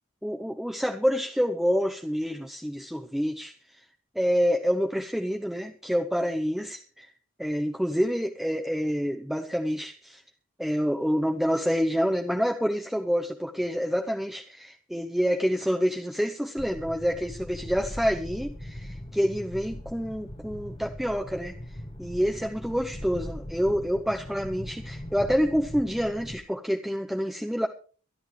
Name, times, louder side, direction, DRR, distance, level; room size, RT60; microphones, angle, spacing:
voice 1, 0.2-3.5 4.1-7.1 7.4-10.2 10.6-21.6 22.0-27.7, equal, ahead, 4 dB, 0.9 m, -27 dB
sound 1, 16.6-26.4, left 1 dB, 25° left, 1.5 m, -40 dB
23.5 x 11.5 x 3.3 m, 0.40 s
head